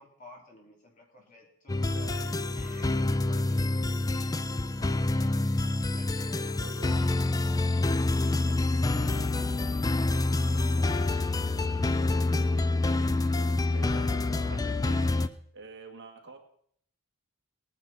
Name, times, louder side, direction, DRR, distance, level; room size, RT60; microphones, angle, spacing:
voice 1, 0.0-1.8 2.5-4.0 4.2-4.5 4.7-5.3 5.9-8.0 8.5-13.3 13.8-14.6, left 1 dB, 35° left, -1 dB, 3.2 m, -51 dB
sound 1, 1.7-15.3, left 2 dB, 15° left, 0.4 m, -27 dB
voice 2, 1.9-2.8 6.6-7.0 9.0-9.2 13.7-16.4, right 3 dB, 55° right, 2 dB, 2.0 m, -48 dB
19.0 x 9.6 x 4.3 m, 0.65 s
head